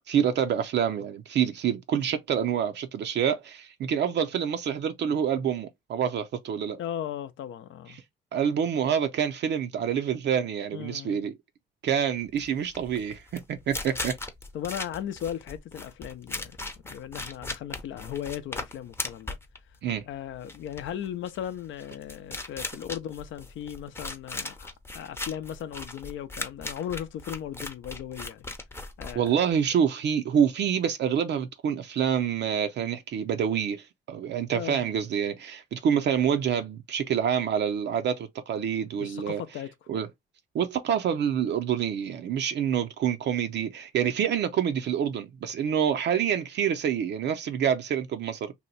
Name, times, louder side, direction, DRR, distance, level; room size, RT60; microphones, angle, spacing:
voice 1, 0.1-6.8 7.9-8.0 8.3-11.3 11.8-14.1 19.8-20.0 29.1-39.4 39.9-40.1 40.5-48.5, right 8 dB, 60° right, 0.5 m, -27 dB
voice 2, 6.8-8.0 10.7-11.2 14.5-19.4 20.0-28.5 29.0-29.3 34.5-34.9 39.0-39.7, left 10 dB, 75° left, 0.5 m, -37 dB
sound 1, 12.3-29.7, left 2 dB, 10° left, 0.6 m, -38 dB
2.8 x 2.2 x 3.9 m
cardioid pair, 90°, 20 cm